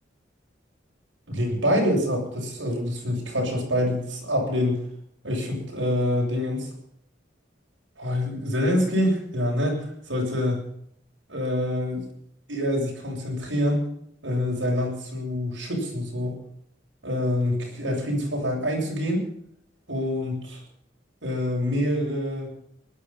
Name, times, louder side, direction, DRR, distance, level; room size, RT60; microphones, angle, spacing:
voice 1, 1.3-4.8 5.2-6.7 8.0-10.6 11.3-12.1 12.5-13.9 14.2-16.4 17.0-19.3 19.9-20.6 21.2-22.5, left 1 dB, 90° right, -1 dB, 7.6 m, -26 dB
20.0 x 12.0 x 5.7 m, 0.69 s
head